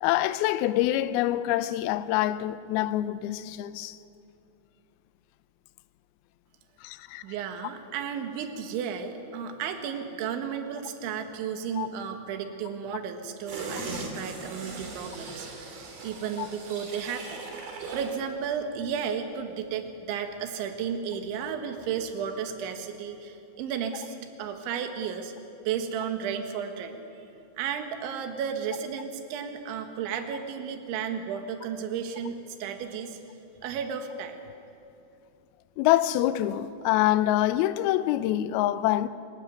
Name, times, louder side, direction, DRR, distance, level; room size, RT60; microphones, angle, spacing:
voice 1, 0.0-4.0 6.8-7.2 11.8-11.9 16.4-16.5 35.8-39.1, left 14 dB, 85° left, 2.1 m, -25 dB
voice 2, 7.2-17.4 17.9-25.3 25.7-27.0 27.6-33.2 33.6-34.4, right 7 dB, 80° right, 3.9 m, -33 dB
sound 1, 13.5-18.2 18.6-18.7, right 3 dB, 55° right, 4.5 m, -39 dB
28.5 x 16.0 x 9.4 m
omnidirectional pair, 5.3 m